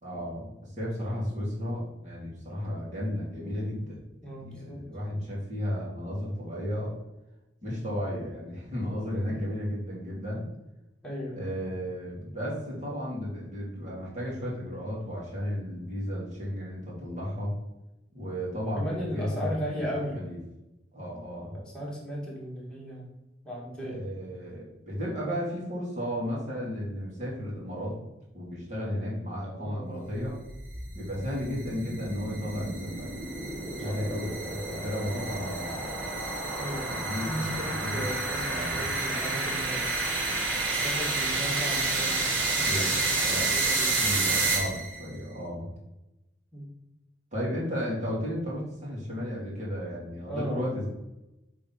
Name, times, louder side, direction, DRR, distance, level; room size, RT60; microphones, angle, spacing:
voice 1, 0.0-4.0 4.3-7.0 7.6-10.4 11.3-17.5 18.1-20.4 20.9-21.5 23.8-27.9 28.3-30.4 30.9-33.1 33.8-35.7 36.9-38.1 38.5-38.8 42.5-42.9 43.2-43.5 44.0-45.7 47.3-50.9, equal, 40° right, -5 dB, 2.7 m, -34 dB
voice 2, 4.2-4.8 11.0-11.5 18.8-20.2 21.5-23.1 23.4-24.0 29.5-30.1 33.8-34.0 36.6-37.0 37.2-39.9 40.7-42.3 42.5-44.5 46.5-46.7 50.3-50.7, equal, 5° left, -5 dB, 2.1 m, -36 dB
sound 1, 30.2-45.0, right 3 dB, 90° right, 1.7 m, -30 dB
6.8 x 3.8 x 5.5 m, 0.95 s
head